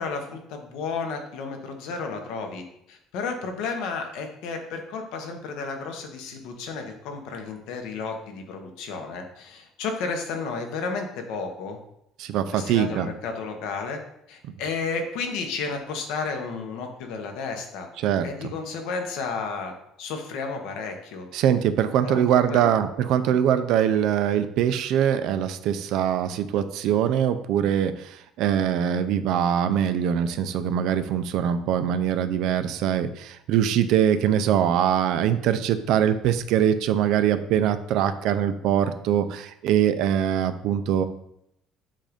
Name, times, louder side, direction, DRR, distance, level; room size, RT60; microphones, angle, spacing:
voice 1, 0.0-11.8 12.5-14.0 14.3-17.9 18.2-19.7 20.0-21.3 22.0-22.7, left 4 dB, 70° left, 4 dB, 1.0 m, -32 dB
voice 2, 12.2-13.1 18.0-18.3 21.3-41.0, right 9 dB, 60° right, 10 dB, 0.4 m, -23 dB
7.5 x 2.6 x 5.0 m, 0.77 s
cardioid pair, 170°, 0 cm